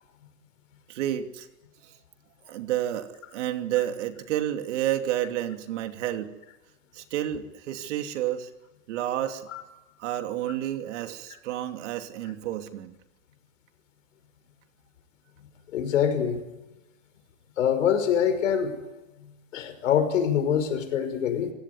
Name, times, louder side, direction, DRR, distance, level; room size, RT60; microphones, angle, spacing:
voice 1, 0.9-1.5 2.5-6.3 6.9-8.5 8.9-9.4 10.0-12.9, right 12 dB, 70° right, 7 dB, 2.8 m, -30 dB
voice 2, 15.7-16.4 17.6-18.7 19.5-21.5, left 8 dB, 90° left, 9 dB, 5.7 m, -24 dB
27.0 x 17.5 x 9.8 m, 1.0 s
supercardioid pair, 150°, 37 cm